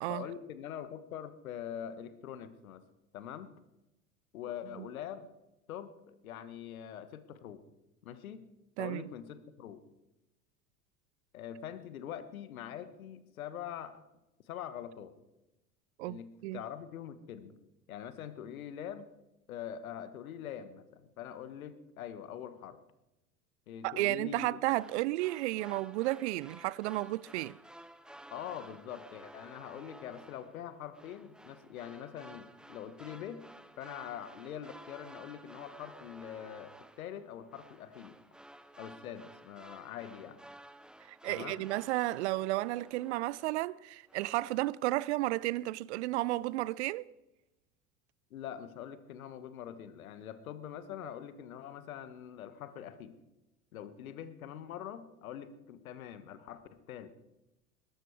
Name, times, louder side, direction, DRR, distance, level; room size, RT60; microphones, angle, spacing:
voice 1, 0.1-2.8 3.1-3.5 4.3-5.3 5.7-7.6 8.0-8.5 8.8-9.8 11.3-14.0 14.5-15.1 16.0-17.6 17.9-19.1 19.5-22.8 23.7-24.6 28.3-33.4 33.8-38.2 38.8-40.4 41.3-41.6 48.3-53.2 53.7-57.1, left 9 dB, 65° left, 1.5 m, -44 dB
voice 2, 8.8-9.1 16.0-16.6 23.8-27.6 41.1-47.1, right 18 dB, 50° right, 0.5 m, -33 dB
sound 1, 24.7-43.8 44.1-44.6, right 1 dB, ahead, 0.8 m, -54 dB
21.0 x 12.0 x 4.8 m
figure-of-eight pair, 80°, 45 cm